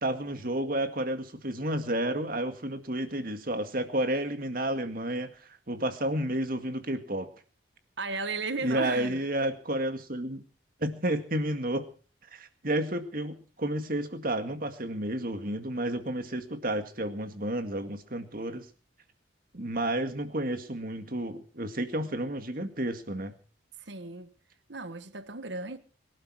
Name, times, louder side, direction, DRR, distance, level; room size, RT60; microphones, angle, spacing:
voice 1, 0.0-7.3 8.6-10.4 10.8-11.9 12.3-18.7 19.5-23.3, right 1 dB, 45° right, 2.1 m, -31 dB
voice 2, 8.0-9.2 23.8-24.3 24.7-25.8, right 3 dB, 60° right, 1.4 m, -35 dB
23.5 x 12.0 x 4.9 m
head